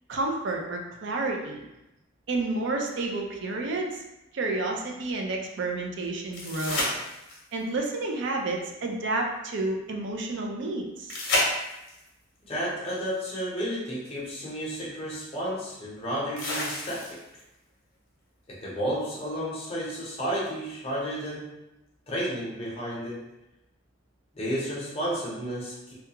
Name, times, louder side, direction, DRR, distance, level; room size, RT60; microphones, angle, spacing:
voice 1, 0.1-1.6 2.3-4.0 4.3-6.9 7.5-11.2, right 2 dB, 60° right, 1 dB, 0.4 m, -30 dB
sound 1, 6.3-7.6 11.1-12.1 14.0-14.1 16.4-17.4 20.3-20.4, left 1 dB, 60° left, 0.8 m, -30 dB
voice 2, 12.5-17.2 18.5-21.5 22.1-23.2 24.3-25.9, equal, 30° left, -6 dB, 0.7 m, -32 dB
2.3 x 2.2 x 2.8 m, 0.92 s
head